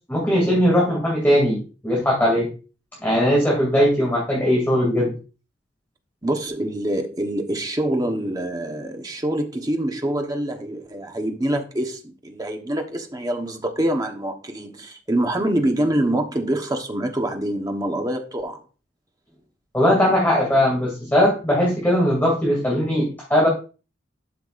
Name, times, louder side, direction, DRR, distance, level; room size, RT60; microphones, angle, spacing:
voice 1, 0.1-2.5 3.0-5.1 19.7-23.5, equal, 10° left, 2.6 m, -19 dB
voice 2, 6.2-18.6, right 1 dB, 20° right, 1.1 m, -25 dB
12.0 x 5.7 x 2.5 m
head